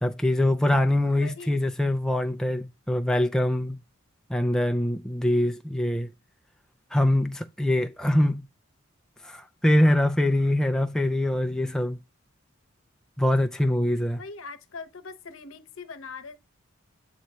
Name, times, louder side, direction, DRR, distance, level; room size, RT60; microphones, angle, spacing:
voice 1, 0.0-3.8 4.3-6.1 6.9-8.5 9.2-12.0 13.2-14.2, left 1 dB, 5° left, 0.3 m, -24 dB
voice 2, 1.2-1.6 14.2-16.4, left 4 dB, 75° left, 0.8 m, -41 dB
8.0 x 3.0 x 4.1 m
head